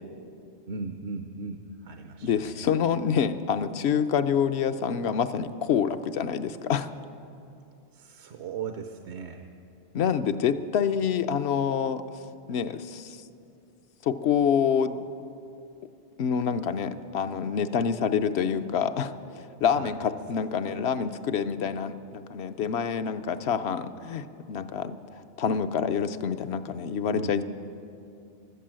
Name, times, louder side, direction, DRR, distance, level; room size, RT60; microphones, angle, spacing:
voice 1, 0.7-2.7 7.9-9.5 19.7-19.9 20.6-21.0 27.1-27.4, right 4 dB, 75° right, 6 dB, 1.0 m, -38 dB
voice 2, 2.2-6.9 9.9-12.0 12.5-13.2 14.0-15.0 16.2-19.1 19.6-25.0 25.4-27.4, left 7 dB, 70° left, 11 dB, 0.9 m, -27 dB
15.5 x 12.5 x 7.5 m, 2.6 s
omnidirectional pair, 1.2 m